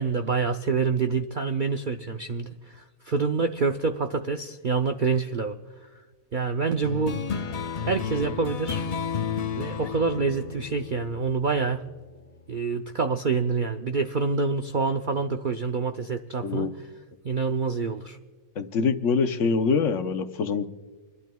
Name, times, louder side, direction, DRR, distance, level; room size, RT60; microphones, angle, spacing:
voice 1, 0.0-5.6 6.3-7.2 7.9-8.8 9.6-11.8 12.5-16.9 17.2-18.2, right 4 dB, 60° right, 6 dB, 0.5 m, -27 dB
sound 1, 6.8-11.8, left 6 dB, 90° left, 0.3 m, -32 dB
voice 2, 18.6-20.7, left 5 dB, 60° left, 8 dB, 1.1 m, -24 dB
28.0 x 12.0 x 2.3 m, 1.4 s
omnidirectional pair, 1.5 m